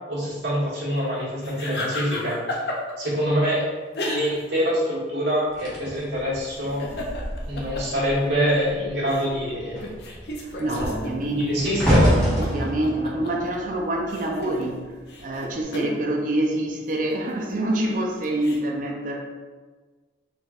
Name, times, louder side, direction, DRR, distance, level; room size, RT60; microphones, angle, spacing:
voice 1, 0.1-2.4 2.6-3.6 4.0-6.8 7.4-9.9 10.6-12.2, equal, 85° right, -8 dB, 1.2 m, -25 dB
sound 1, 1.4-3.1 3.9-4.6 4.9-5.0 6.5-8.6 9.1-9.3 9.7-13.5 14.0-16.0 17.0-18.6, left 1 dB, 60° left, 0.5 m, -33 dB
sound 2, 5.6-8.3 8.6-9.0 9.3-14.6 15.4-15.6, equal, 5° left, 1.0 m, -26 dB
voice 2, 10.4-11.7 12.4-14.8 15.2-19.2, right 1 dB, 45° right, 1 dB, 0.5 m, -26 dB
4.1 x 3.1 x 2.4 m, 1.4 s
head